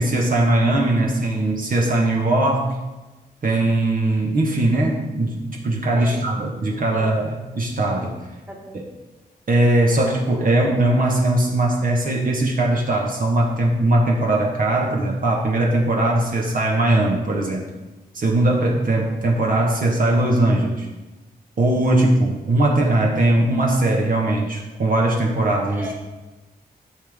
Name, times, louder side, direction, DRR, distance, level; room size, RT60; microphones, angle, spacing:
voice 1, 0.0-2.8 3.4-8.2 9.5-17.6 18.1-20.9 21.6-25.9, right 1 dB, 60° right, -1 dB, 1.5 m, -20 dB
voice 2, 8.5-8.8 25.7-25.9, left 2 dB, 10° right, -1 dB, 1.8 m, -34 dB
11.5 x 6.7 x 3.7 m, 1.1 s
wide cardioid pair, 120°, 16 cm